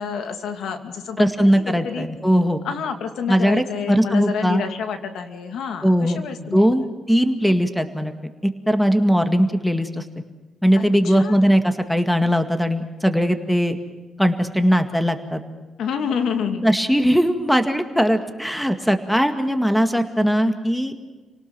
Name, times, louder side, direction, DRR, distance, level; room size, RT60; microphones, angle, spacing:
voice 1, 0.0-2.1 2.6-6.6 10.7-11.5 15.8-16.7, left 6 dB, 75° left, 6 dB, 2.5 m, -29 dB
voice 2, 1.2-2.6 3.3-4.6 5.8-6.2 6.5-8.1 8.4-10.0 10.6-13.8 14.2-15.4 16.6-21.0, equal, ahead, 7 dB, 2.0 m, -19 dB
29.0 x 18.5 x 6.2 m, 1.3 s
cardioid pair, 100°, 0 cm